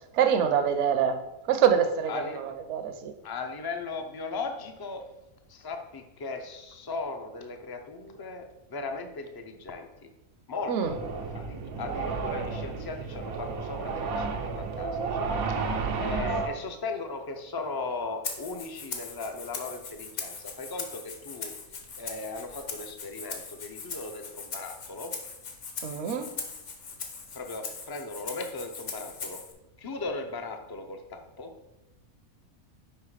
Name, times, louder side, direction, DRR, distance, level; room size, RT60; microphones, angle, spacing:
voice 1, 0.1-1.2 1.5-3.1 10.7-10.9 25.8-26.3, right 8 dB, 65° right, 7 dB, 0.9 m, -25 dB
voice 2, 2.1-2.4 3.2-5.0 5.5-9.9 10.5-11.0 11.3-15.3 16.0-21.5 22.0-25.1 27.3-29.4 29.8-31.5, left 3 dB, 35° left, 5 dB, 0.3 m, -37 dB
sound 1, 10.8-16.5, right 4 dB, 90° right, 1.2 m, -32 dB
Rattle (instrument), 18.2-29.5, left 5 dB, 60° left, 1.2 m, -40 dB
5.7 x 5.0 x 4.8 m, 0.95 s
omnidirectional pair, 1.5 m